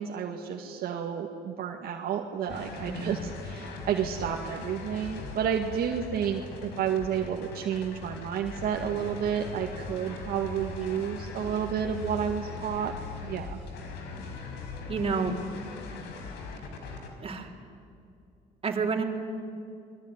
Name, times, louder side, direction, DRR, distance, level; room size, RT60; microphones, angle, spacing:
voice 1, 0.0-12.9 13.2-13.6, right 8 dB, 65° right, 2 dB, 2.0 m, -31 dB
sound 1, 2.5-17.1, left 4 dB, 90° left, 4.6 m, -40 dB
voice 2, 2.8-3.1 14.9-15.4 17.2-17.5 18.6-19.0, right 5 dB, 35° right, 1 dB, 3.9 m, -29 dB
27.0 x 22.0 x 9.9 m, 2.6 s
cardioid pair, 110°, 17 cm